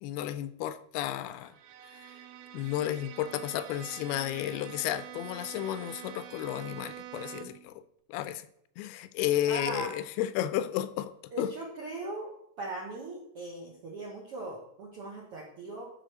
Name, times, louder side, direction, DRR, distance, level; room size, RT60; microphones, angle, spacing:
voice 1, 0.0-1.5 1.9-2.1 2.5-7.8 8.1-8.5 8.8-11.1 11.4-11.5, left 12 dB, 85° left, 2.6 m, -32 dB
Bowed string instrument, 1.3-7.7, right 11 dB, 85° right, 1.7 m, -46 dB
voice 2, 9.5-9.9 11.3-12.3 12.6-15.9, right 2 dB, 70° right, 1.4 m, -39 dB
11.5 x 4.2 x 6.3 m
omnidirectional pair, 4.6 m